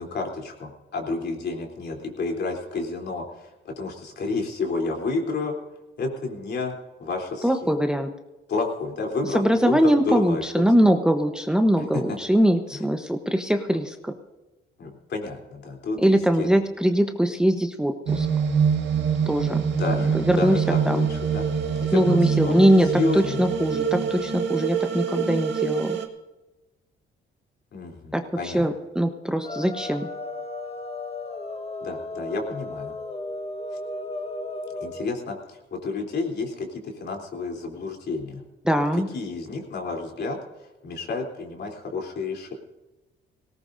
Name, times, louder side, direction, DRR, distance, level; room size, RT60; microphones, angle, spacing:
voice 1, 0.0-5.5 6.0-6.7 7.0-7.5 8.5-10.4 11.8-12.2 14.8-16.5 19.8-21.5 21.8-23.4 27.7-28.7 31.8-33.0 34.8-38.4 39.1-40.4 40.8-42.5, left 3 dB, 60° left, 2 dB, 3.6 m, -30 dB
voice 2, 7.4-8.1 9.3-14.1 16.0-18.3 19.3-19.6 20.1-21.1 21.9-26.0 28.1-30.1 38.6-39.1, equal, 5° right, 5 dB, 1.0 m, -22 dB
sound 1, 18.1-26.1, right 6 dB, 65° right, 1.8 m, -25 dB
sound 2, 29.4-35.1, left 2 dB, 30° left, 1.5 m, -34 dB
19.0 x 18.0 x 2.7 m, 1.1 s
cardioid pair, 90°, 20 cm